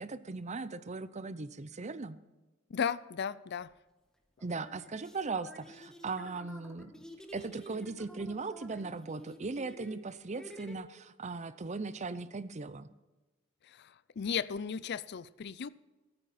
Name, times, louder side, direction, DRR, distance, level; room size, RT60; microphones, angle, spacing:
voice 1, 0.0-2.2 4.4-7.0 7.3-12.9, right 3 dB, 35° right, 15 dB, 0.6 m, -38 dB
voice 2, 2.7-3.7 13.6-15.7, left 7 dB, 55° left, 18 dB, 0.4 m, -35 dB
sound 1, 3.6-3.7 4.4-10.8, equal, 5° left, 1.4 m, -51 dB
14.0 x 13.5 x 4.3 m, 1.1 s
head